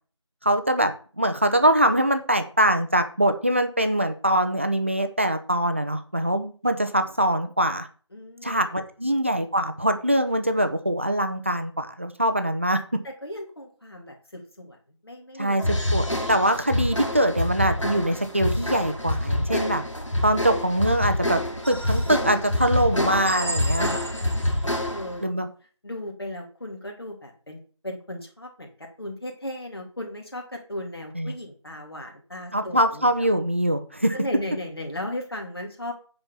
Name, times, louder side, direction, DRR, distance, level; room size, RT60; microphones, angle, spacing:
voice 1, 0.4-7.9 8.4-12.8 15.4-19.8 20.2-21.4 21.7-24.0 25.2-25.5 31.1-31.3 32.5-34.1, right 1 dB, 25° right, 8 dB, 0.8 m, -23 dB
voice 2, 8.1-8.8 13.0-14.8 15.0-15.6 24.1-25.2 25.8-28.7 29.0-33.3 34.1-35.9, left 1 dB, 50° left, 1 dB, 3.1 m, -36 dB
sound 1, 15.6-25.2, left 1 dB, 75° left, 3.2 m, -26 dB
sound 2, 21.6-22.4 23.2-24.7, right 1 dB, 55° right, 1.4 m, -35 dB
9.4 x 4.5 x 7.1 m, 0.40 s
figure-of-eight pair, 170°, 16 cm